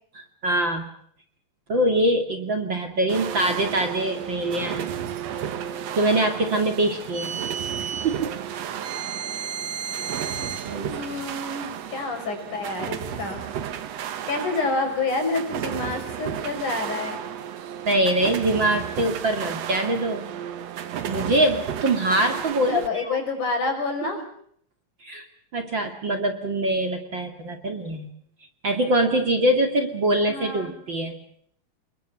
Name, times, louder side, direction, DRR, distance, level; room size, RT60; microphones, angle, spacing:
voice 1, 0.1-0.8 1.7-4.9 6.0-7.4 8.0-8.3 10.6-10.9 17.8-20.3 21.1-23.2 25.0-25.2 25.5-28.1 28.6-31.1, right 1 dB, 35° right, 6 dB, 2.9 m, -23 dB
sound 1, 3.1-22.9, right 9 dB, 60° right, 2.1 m, -33 dB
sound 2, 7.1-8.1 8.8-10.7, right 8 dB, 85° right, 8.9 m, -32 dB
voice 2, 10.9-13.4 14.3-17.2 22.7-24.2 30.3-30.8, left 3 dB, 65° left, 5 dB, 7.0 m, -28 dB
28.5 x 22.0 x 5.9 m, 0.64 s
omnidirectional pair, 3.9 m